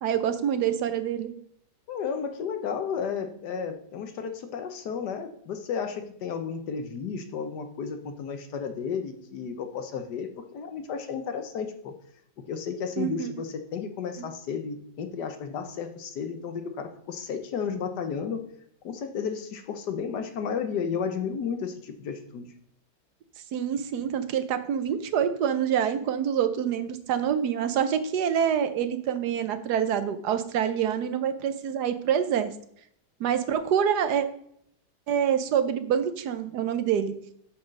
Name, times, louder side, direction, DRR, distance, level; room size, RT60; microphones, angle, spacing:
voice 1, 0.0-1.3 13.0-13.3 23.5-32.5 33.2-34.3 35.1-37.1, right 8 dB, 75° right, 10 dB, 1.3 m, -26 dB
voice 2, 1.9-11.9 12.5-18.4 18.8-22.5, left 6 dB, 75° left, 7 dB, 1.5 m, -33 dB
7.3 x 4.7 x 6.3 m, 0.68 s
omnidirectional pair, 1.8 m